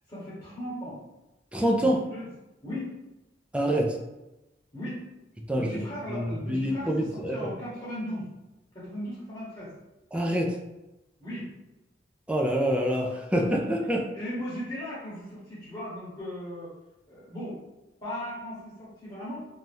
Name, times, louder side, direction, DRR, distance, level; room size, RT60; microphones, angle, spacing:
voice 1, 0.1-1.0 1.8-2.2 2.6-2.9 4.7-5.0 5.5-8.3 8.7-9.7 11.2-11.5 14.1-16.7 17.1-17.6 18.0-19.5, equal, 30° left, -9 dB, 1.0 m, -37 dB
voice 2, 1.5-2.0 3.5-4.0 5.5-5.8 6.1-7.5 10.1-10.6 12.3-14.0, equal, 5° right, -1 dB, 0.4 m, -26 dB
2.6 x 2.2 x 3.3 m, 0.99 s
head